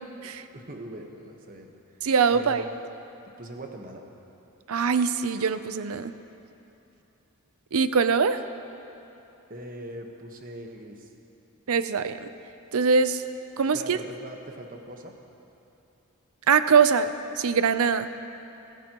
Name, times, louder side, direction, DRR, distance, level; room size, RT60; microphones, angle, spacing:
voice 1, 0.5-1.7 2.3-2.6 3.4-4.0 9.5-11.1 13.7-15.1, right 1 dB, 40° right, 2 dB, 1.2 m, -41 dB
voice 2, 2.0-2.6 4.7-6.1 7.7-8.4 11.7-12.3 12.7-13.2 13.6-14.0 16.5-17.1 17.4-18.1, right 5 dB, 70° right, 11 dB, 0.6 m, -22 dB
24.5 x 14.0 x 3.0 m, 2.9 s
head